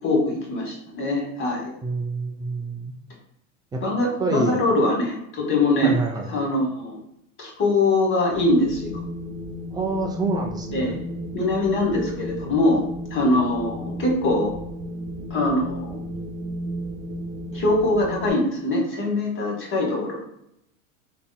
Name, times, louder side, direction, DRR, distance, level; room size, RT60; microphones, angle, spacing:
voice 1, 0.0-1.8 3.8-6.0 6.3-7.0 7.4-9.0 10.7-11.0 11.3-12.8 13.1-14.5 15.3-16.0 17.5-20.2, left 2 dB, 30° left, -1 dB, 1.3 m, -22 dB
voice 2, 1.8-2.9 3.7-3.8 4.2-4.6 5.8-6.3 9.7-11.0, right 3 dB, 10° right, 2 dB, 0.3 m, -27 dB
Wind, 8.3-18.3, equal, 70° right, 0.8 m, -34 dB
4.0 x 2.6 x 2.2 m, 0.80 s
supercardioid pair, 115°, 40 cm